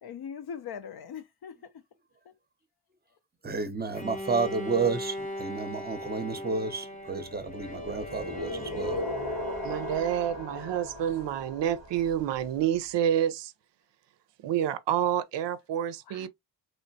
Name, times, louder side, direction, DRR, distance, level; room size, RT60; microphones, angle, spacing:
voice 1, 0.0-1.6 8.3-9.0 16.1-16.3, left 7 dB, 60° left, 0.6 m, -41 dB
voice 2, 3.4-9.0, right 4 dB, 20° right, 0.6 m, -31 dB
Bowed string instrument, 3.9-10.7, left 1 dB, 20° left, 0.7 m, -40 dB
sound 1, 7.4-12.4, left 1 dB, 90° left, 1.8 m, -37 dB
voice 3, 9.6-13.5 14.4-16.3, right 10 dB, 75° right, 0.5 m, -28 dB
3.1 x 2.1 x 2.6 m
cardioid pair, 75°, 44 cm